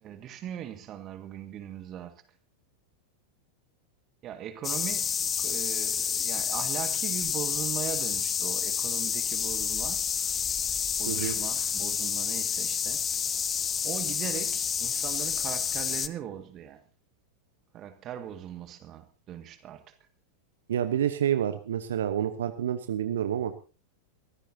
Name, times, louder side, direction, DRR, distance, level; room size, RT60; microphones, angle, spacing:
voice 1, 0.0-2.2 4.2-10.0 11.0-13.0 13.8-16.8 17.7-19.8, right 10 dB, 30° right, 1.9 m, -39 dB
sound 1, 4.6-16.1, left 7 dB, 20° left, 0.8 m, -29 dB
voice 2, 11.1-11.4 20.7-23.5, right 10 dB, 60° right, 1.0 m, -28 dB
23.5 x 15.0 x 2.8 m
figure-of-eight pair, 90°, 0 cm